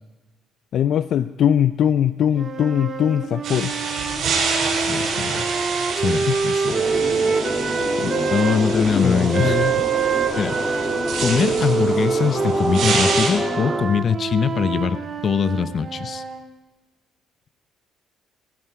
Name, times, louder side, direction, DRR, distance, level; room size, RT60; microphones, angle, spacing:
voice 1, 0.7-3.7 6.3-6.4 8.0-8.3 8.8-9.7, left 9 dB, 60° left, 12 dB, 0.5 m, -21 dB
sound 1, 2.3-8.6 9.3-16.4, right 5 dB, 40° right, 2.1 m, -25 dB
sound 2, 3.4-13.3, right 4 dB, 65° right, 7.0 m, -28 dB
voice 2, 4.9-5.5 6.0-6.8 8.3-9.7 10.4-10.6 11.2-16.2, left 6 dB, 45° left, 13 dB, 0.9 m, -22 dB
sound 3, 6.7-13.8, equal, 5° left, 2.9 m, -27 dB
17.0 x 16.0 x 4.9 m, 1.1 s
cardioid pair, 110°, 0 cm